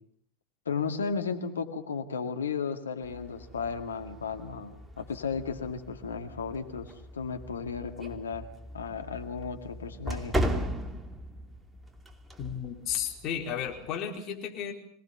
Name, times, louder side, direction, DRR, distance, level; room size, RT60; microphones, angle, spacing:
voice 1, 0.7-8.5 8.7-10.4, left 5 dB, 85° left, 6 dB, 2.1 m, -34 dB
sound 1, 3.0-13.9, equal, 10° right, 2.7 m, -38 dB
voice 2, 12.4-14.7, left 9 dB, 45° left, 3 dB, 4.6 m, -33 dB
26.0 x 19.0 x 7.1 m, 0.67 s
hypercardioid pair, 85°, 0 cm